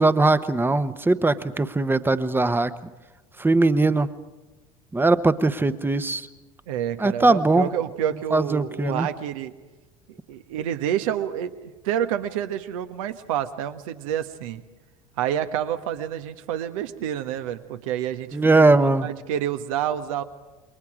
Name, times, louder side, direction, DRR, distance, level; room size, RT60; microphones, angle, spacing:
voice 1, 0.0-2.7 3.4-4.1 4.9-6.2 7.0-7.7 8.3-9.1 18.3-19.1, right 2 dB, 10° right, 13 dB, 1.1 m, -20 dB
voice 2, 6.7-9.5 10.3-14.6 15.2-20.2, right 10 dB, 70° right, 9 dB, 1.3 m, -28 dB
28.0 x 22.0 x 5.0 m, 1.2 s
hypercardioid pair, 75°, 18 cm